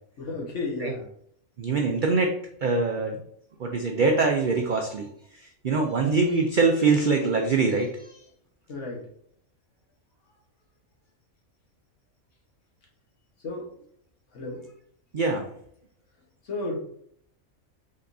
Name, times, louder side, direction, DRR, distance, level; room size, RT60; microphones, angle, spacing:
voice 1, 0.2-1.0 8.7-9.0 13.4-13.7 14.3-14.6 16.5-16.8, left 2 dB, 60° left, -1 dB, 1.4 m, -32 dB
voice 2, 1.6-2.3 2.6-3.2 3.6-5.1 5.3-8.2 15.1-15.5, right 4 dB, 65° right, 3 dB, 0.4 m, -23 dB
5.3 x 3.7 x 2.6 m, 0.67 s
omnidirectional pair, 1.5 m